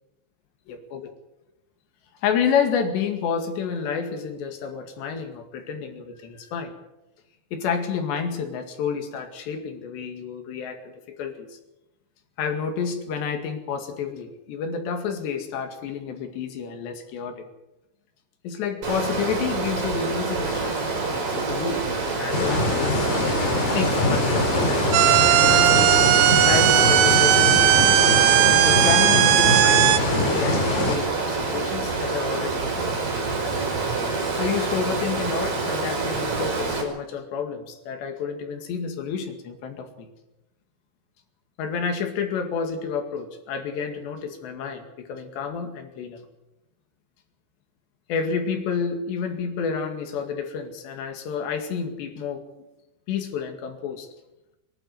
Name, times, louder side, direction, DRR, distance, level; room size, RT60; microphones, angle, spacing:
voice 1, 0.7-1.1 2.2-6.7 7.5-10.9 11.2-11.6 12.4-17.5 18.4-23.1 23.7-24.9 25.2-26.0 26.4-27.6 28.6-33.0 34.4-40.1 41.6-46.2 48.1-52.4 53.1-54.1, left 6 dB, 75° left, 6 dB, 4.3 m, -29 dB
Water, 18.8-36.8, right 4 dB, 55° right, 6.1 m, -27 dB
sound 1, 22.3-31.0, left 2 dB, 55° left, 5.7 m, -24 dB
sound 2, 24.9-30.0, right 15 dB, 85° right, 3.1 m, -17 dB
23.0 x 12.0 x 9.6 m, 0.95 s
omnidirectional pair, 5.0 m